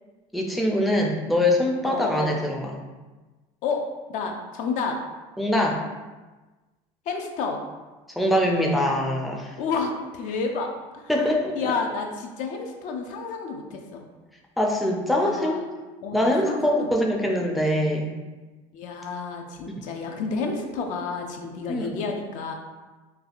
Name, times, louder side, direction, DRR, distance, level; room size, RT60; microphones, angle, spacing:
voice 1, 0.3-2.8 5.4-5.8 8.2-9.6 11.1-11.7 14.6-15.6 16.1-18.1 19.7-19.8 21.7-22.0, left 1 dB, ahead, -1 dB, 0.4 m, -23 dB
voice 2, 1.8-2.4 3.6-3.8 4.1-5.0 7.1-7.6 9.6-11.1 11.5-14.0 15.1-15.6 16.0-16.9 18.7-22.5, left 4 dB, 60° left, 3 dB, 0.5 m, -30 dB
3.3 x 2.2 x 2.4 m, 1.2 s
supercardioid pair, 95°, 14 cm